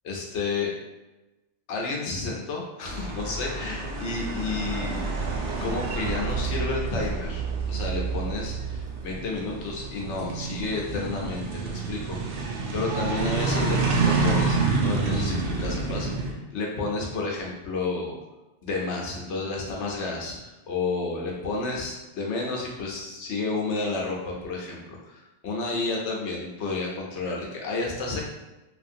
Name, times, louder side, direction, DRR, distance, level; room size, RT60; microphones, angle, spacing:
voice 1, 0.0-0.7 1.7-5.1 5.6-12.2 12.7-14.6 14.8-18.2 18.6-24.8 25.1-28.2, left 3 dB, 80° left, -2 dB, 1.0 m, -31 dB
sound 1, 2.8-16.3, right 4 dB, 80° right, 0.9 m, -28 dB
2.9 x 2.5 x 2.6 m, 1.1 s
omnidirectional pair, 1.2 m